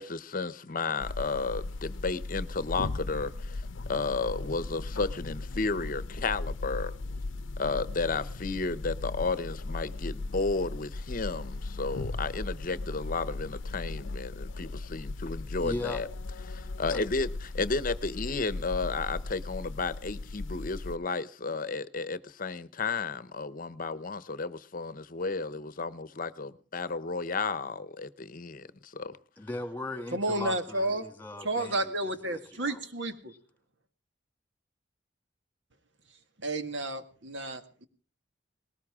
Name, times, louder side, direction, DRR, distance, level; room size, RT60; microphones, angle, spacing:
voice 1, 0.0-6.9 7.6-16.1 16.5-29.2, left 4 dB, 45° left, 0.8 m, -33 dB
sound 1, 1.0-21.0, left 2 dB, 90° left, 0.7 m, -37 dB
voice 2, 15.6-16.0 16.9-17.0 29.4-31.9 32.2-32.8, left 1 dB, 10° left, 2.3 m, -38 dB
voice 3, 30.1-31.0 31.4-33.3 36.4-37.8, right 1 dB, 70° right, 1.9 m, -31 dB
20.0 x 18.5 x 3.6 m
head